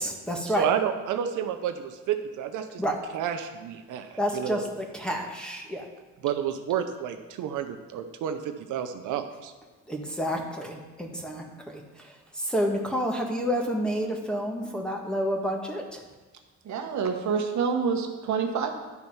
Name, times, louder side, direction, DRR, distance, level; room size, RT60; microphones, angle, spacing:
voice 1, 0.0-0.7 2.8-3.0 4.2-5.8 9.9-16.0, equal, 5° left, 1 dB, 1.6 m, -29 dB
voice 2, 0.6-2.8 3.1-4.6 6.2-9.5, right 9 dB, 85° right, 7 dB, 0.7 m, -30 dB
voice 3, 16.6-18.7, right 6 dB, 70° right, 4 dB, 1.2 m, -27 dB
11.0 x 4.5 x 5.5 m, 1.3 s
cardioid pair, 90°, 30 cm